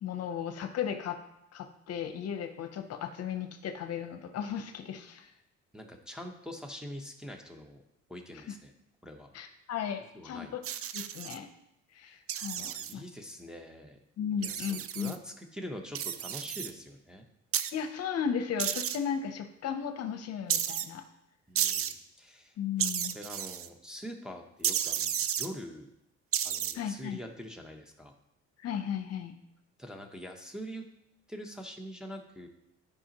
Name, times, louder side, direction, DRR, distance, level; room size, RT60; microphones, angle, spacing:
voice 1, 0.0-1.2 1.5-5.3 8.3-8.5 9.3-10.6 10.9-11.5 11.9-13.0 14.2-15.1 17.7-21.0 22.6-23.2 26.7-27.2 28.6-29.4, left 8 dB, 55° left, 7 dB, 0.7 m, -35 dB
voice 2, 5.7-7.8 8.1-8.7 9.0-9.3 10.1-10.5 12.6-14.0 14.4-17.2 21.5-25.9 26.4-28.1 29.8-30.8 31.3-32.5, equal, ahead, 1 dB, 0.8 m, -44 dB
sound 1, 10.6-11.4 12.3-12.9 14.4-15.2 15.9-16.7 17.5-17.7 18.6-19.0 20.5-20.9 21.6-21.9 22.8-23.7 24.6-25.5 26.3-26.7, right 10 dB, 50° right, 0.5 m, -32 dB
10.0 x 5.0 x 2.9 m, 0.82 s
cardioid pair, 105°, 29 cm